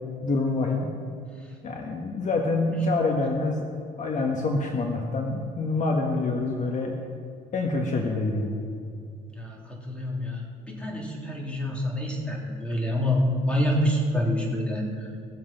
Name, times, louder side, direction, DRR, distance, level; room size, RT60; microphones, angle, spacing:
voice 1, 0.2-0.9 1.6-3.7 4.0-7.0 7.5-8.6, left 3 dB, 45° left, 1 dB, 1.5 m, -26 dB
voice 2, 9.3-15.1, left 1 dB, 5° left, -2 dB, 3.4 m, -27 dB
18.0 x 7.6 x 5.9 m, 2.4 s
cardioid pair, 110°, 17 cm